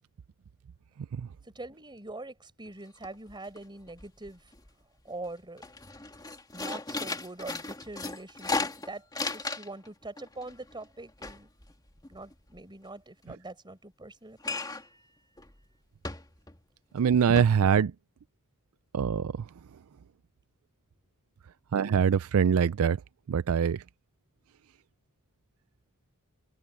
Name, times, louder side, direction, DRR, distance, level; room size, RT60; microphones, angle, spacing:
voice 1, 1.4-4.5 5.0-5.6 6.5-11.5 12.1-14.8, right 2 dB, 20° right, 4.8 m, -43 dB
sound 1, 2.7-2.8 3.0-3.6 3.9-4.7 5.1-5.3 5.6-9.9 10.2-12.6 14.4-15.0 15.4-15.5 16.0-16.6 17.0-17.1 17.4-17.5, left 3 dB, 20° left, 2.3 m, -36 dB
voice 2, 16.9-17.9 18.9-19.3 21.7-23.0 23.3-23.8, right 7 dB, 70° right, 0.4 m, -23 dB
head